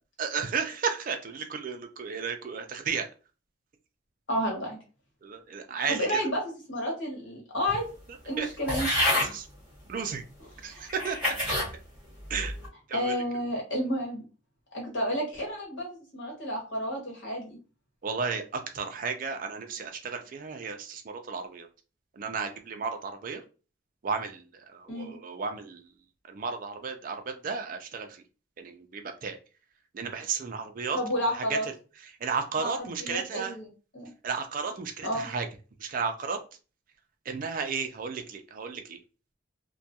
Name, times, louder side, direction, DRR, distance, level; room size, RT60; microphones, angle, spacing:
voice 1, 0.2-3.1 5.2-6.2 8.4-8.5 9.2-9.5 9.9-10.2 10.6-11.6 12.3-12.5 12.9-13.1 18.0-21.7 22.1-23.4 24.0-25.9 26.2-28.2 28.6-29.4 29.9-31.0 31.3-31.6 32.1-33.6 34.2-35.5 35.8-36.4 37.3-39.0, right 5 dB, 45° right, 5 dB, 0.4 m, -33 dB
voice 2, 4.3-4.8 5.9-6.4 6.7-7.9 8.2-8.9 10.7-10.9 12.9-14.2 14.7-17.6 24.9-25.1 30.9-31.6 32.6-33.7 33.9-34.1 35.0-35.3, equal, 75° left, -1 dB, 1.1 m, -31 dB
sound 1, 8.7-9.3 10.1-10.2 10.9-11.7 12.3-12.7, left 1 dB, 10° right, 1.1 m, -27 dB
2.2 x 2.2 x 2.7 m, 0.34 s
head